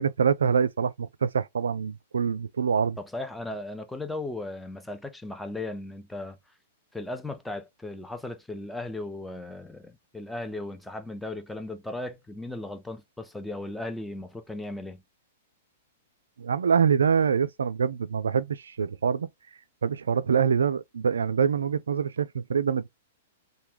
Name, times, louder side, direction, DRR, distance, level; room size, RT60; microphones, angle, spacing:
voice 1, 0.0-3.0 16.4-19.3 19.8-22.9, right 6 dB, 65° right, 0.3 m, -25 dB
voice 2, 3.0-6.4 6.9-15.0, left 2 dB, 5° left, 0.5 m, -36 dB
3.3 x 2.2 x 3.0 m
figure-of-eight pair, 105°, 0 cm